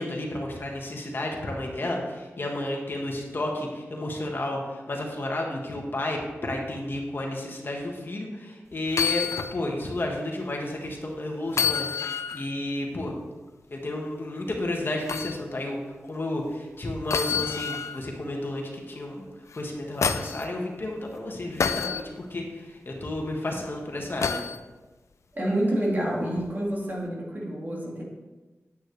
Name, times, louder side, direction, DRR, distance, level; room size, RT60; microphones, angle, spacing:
voice 1, 0.0-13.2 13.7-24.4, left 1 dB, 45° left, 0 dB, 1.5 m, -32 dB
sound 1, 8.9-9.5 10.0-10.1 11.5-12.5 15.1-15.4 17.1-18.0 19.5-20.4 21.6-22.0 24.2-24.6 26.4-26.5, left 6 dB, 85° left, 0.4 m, -28 dB
voice 2, 25.3-28.0, right 1 dB, 40° right, -3 dB, 2.3 m, -28 dB
9.1 x 8.7 x 3.3 m, 1.2 s
wide cardioid pair, 105°, 5 cm